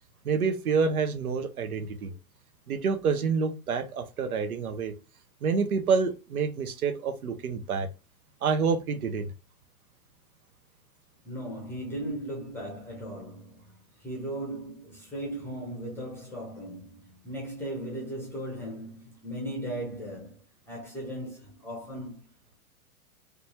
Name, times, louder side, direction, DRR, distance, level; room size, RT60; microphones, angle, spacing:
voice 1, 0.2-2.1 2.7-4.9 5.4-7.9 8.4-9.3, right 5 dB, 85° right, 0.7 m, -27 dB
voice 2, 11.2-22.2, right 1 dB, 5° left, 0.6 m, -37 dB
2.9 x 2.3 x 2.7 m
hypercardioid pair, 125°, 43 cm